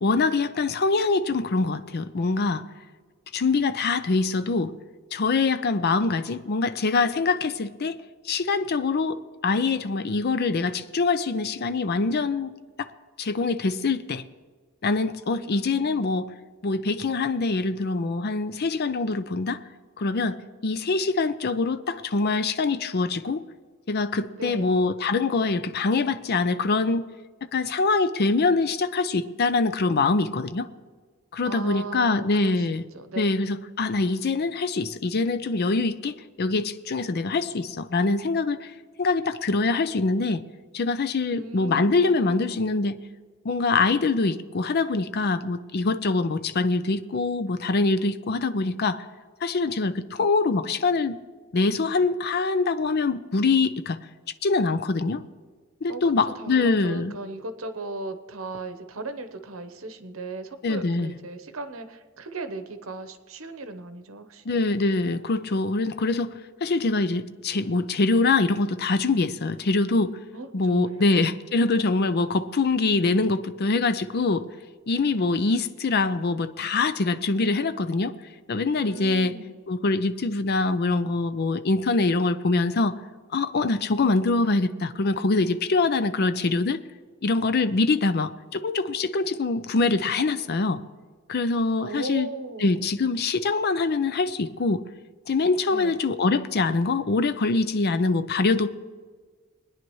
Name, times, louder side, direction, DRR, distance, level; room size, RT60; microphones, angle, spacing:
voice 1, 0.0-2.6 3.3-4.7 5.1-12.9 13.2-14.2 14.8-16.3 16.6-19.6 20.0-23.5 23.9-27.1 27.5-30.7 31.3-32.8 33.2-38.7 39.0-40.4 40.7-43.0 43.4-49.0 49.4-51.2 51.5-54.0 54.4-55.2 55.8-57.1 60.6-61.1 64.5-70.2 70.5-74.5 74.9-78.1 78.5-79.3 79.7-83.0 83.3-86.8 87.2-90.8 91.3-92.3 92.6-94.8 95.3-98.7, left 3 dB, 50° left, 12 dB, 0.5 m, -24 dB
voice 2, 15.3-16.1 24.4-24.7 31.4-32.6 32.9-33.3 41.3-42.6 55.9-64.6 70.3-71.4 78.8-79.6 91.8-92.7 95.7-96.0, right 2 dB, 75° right, 9 dB, 1.0 m, -37 dB
21.5 x 9.9 x 3.1 m, 1.5 s
head